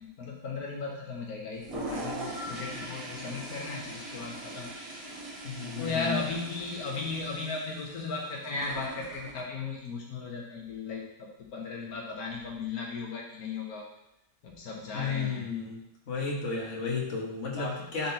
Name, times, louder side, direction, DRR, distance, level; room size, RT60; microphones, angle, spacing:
voice 1, 0.0-4.7 5.8-13.9 14.4-15.5 17.6-17.9, left 4 dB, 90° left, -1 dB, 1.5 m, -36 dB
Toilet flush, 1.5-9.4, right 1 dB, 75° right, 2.2 m, -41 dB
voice 2, 5.4-6.2 14.9-15.8 16.1-18.1, left 5 dB, 55° left, -3 dB, 1.7 m, -33 dB
10.5 x 3.9 x 2.9 m, 0.84 s
omnidirectional pair, 1.5 m